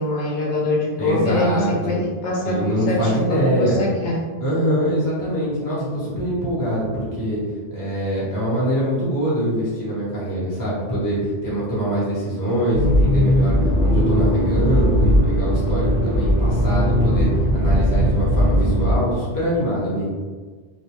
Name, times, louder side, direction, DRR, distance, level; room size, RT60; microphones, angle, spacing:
voice 1, 0.0-4.2, left 1 dB, 80° left, -3 dB, 0.9 m, -23 dB
voice 2, 1.0-2.0 2.4-3.8 4.4-7.4 7.7-11.2 11.4-17.3 17.5-20.1, equal, 20° left, -9 dB, 0.9 m, -23 dB
Accelerating revving vroom, 12.7-18.9, equal, 25° right, 1.0 m, -18 dB
2.5 x 2.1 x 2.9 m, 1.4 s
omnidirectional pair, 1.2 m